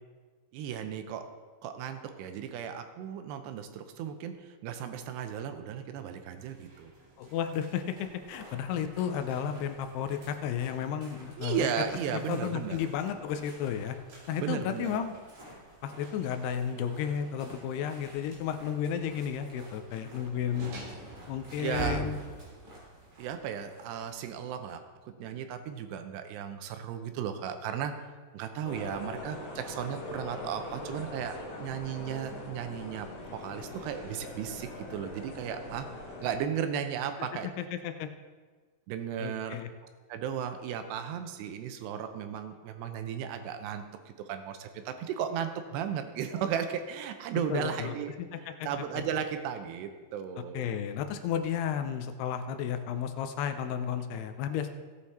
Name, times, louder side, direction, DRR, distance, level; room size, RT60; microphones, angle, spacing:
voice 1, 0.5-1.2 1.6-6.9 11.4-12.8 14.4-14.9 21.6-22.0 23.2-27.9 28.3-33.1 33.3-35.9 36.2-37.5 38.9-39.6 40.1-48.1 48.6-50.7, right 8 dB, 85° right, 8 dB, 2.9 m, -35 dB
sound 1, 6.4-23.3, right 3 dB, 70° right, 4.5 m, -47 dB
voice 2, 7.2-11.7 12.3-14.0 14.3-15.1 15.8-20.7 21.3-22.2 37.7-38.1 39.2-39.7 47.5-48.7 48.9-49.0 50.5-54.7, left 8 dB, 80° left, 8 dB, 2.6 m, -33 dB
sound 2, 8.0-24.3, equal, 40° right, 4.7 m, -53 dB
sound 3, 28.6-36.4, left 2 dB, 55° left, 3.8 m, -42 dB
16.0 x 8.2 x 4.3 m, 1.5 s
omnidirectional pair, 4.8 m